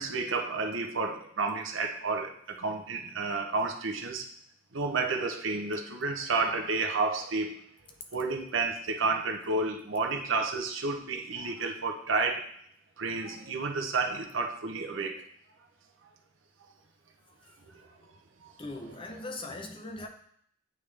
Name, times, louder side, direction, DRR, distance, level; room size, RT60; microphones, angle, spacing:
voice 1, 0.0-4.3 4.7-7.6 8.1-12.5 13.0-15.2 16.0-16.1 17.6-18.1 18.4-18.5, right 3 dB, 70° right, 0.8 m, -31 dB
voice 2, 18.6-20.1, left 2 dB, 25° left, 0.6 m, -40 dB
8.5 x 3.6 x 3.3 m
head